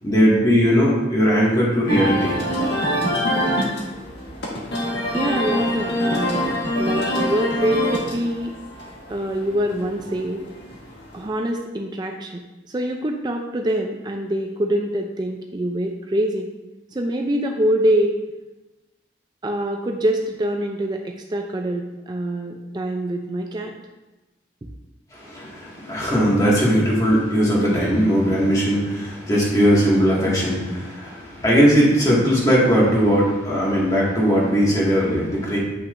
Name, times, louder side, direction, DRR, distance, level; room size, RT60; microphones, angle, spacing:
voice 1, 0.0-2.3 25.1-35.6, equal, 20° left, -6 dB, 1.9 m, -19 dB
sound 1, 1.9-11.3, equal, 70° left, 1.6 m, -25 dB
voice 2, 5.1-8.5 9.1-10.4 11.1-16.5 16.9-18.2 19.4-23.7, right 1 dB, 25° right, 3 dB, 0.4 m, -25 dB
8.7 x 5.8 x 2.6 m, 1.1 s
head